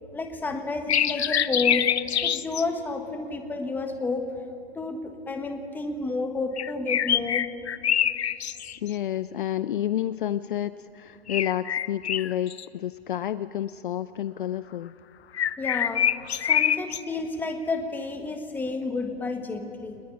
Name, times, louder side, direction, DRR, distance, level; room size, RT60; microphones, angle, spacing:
voice 1, 0.1-2.0 2.2-4.3 4.7-7.5 15.6-16.1 16.4-20.0, left 3 dB, 5° left, 5 dB, 1.4 m, -30 dB
sound 1, 0.9-2.6 6.6-9.0 11.3-12.7 15.3-17.0, left 9 dB, 75° left, 0.9 m, -25 dB
voice 2, 8.8-14.9, left 11 dB, 50° left, 15 dB, 0.6 m, -30 dB
24.0 x 20.5 x 9.8 m, 2.8 s
hypercardioid pair, 150°, 33 cm